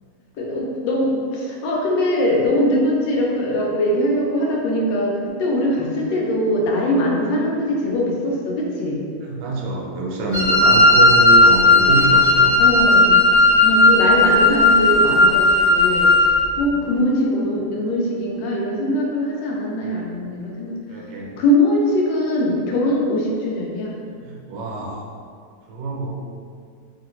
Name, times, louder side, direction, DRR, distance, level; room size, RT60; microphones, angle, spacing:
voice 1, 0.4-9.0 12.6-13.3 13.6-16.3 16.6-21.1 21.4-24.0, left 1 dB, 80° left, -2 dB, 1.3 m, -21 dB
voice 2, 9.2-12.6 16.7-16.8 20.9-21.3 24.2-25.0 25.7-26.1, right 2 dB, 80° right, -1 dB, 1.2 m, -25 dB
Wind instrument woodwind instrument, 10.3-16.4, left 2 dB, 40° right, 0.4 m, -14 dB
3.2 x 2.4 x 2.9 m, 2.2 s
omnidirectional pair, 2.0 m